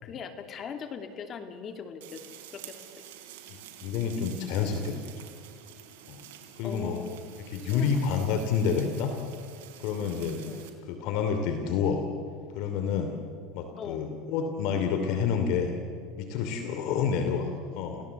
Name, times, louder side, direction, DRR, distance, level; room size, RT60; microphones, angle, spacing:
voice 1, 0.0-2.8 6.6-7.4 7.7-7.9 8.3-8.5 10.5-10.7 13.8-14.0 17.0-17.2, left 6 dB, 35° left, 7 dB, 2.7 m, -40 dB
sound 1, 2.0-10.7, right 11 dB, 85° right, 3.7 m, -49 dB
voice 2, 3.8-5.2 6.1-6.2 6.6-7.0 7.5-9.1 9.8-10.4 10.9-12.0 12.5-13.2 13.5-15.7 16.2-18.0, left 6 dB, 60° left, 6 dB, 2.8 m, -29 dB
29.5 x 16.5 x 8.3 m, 2.3 s
supercardioid pair, 130°, 0 cm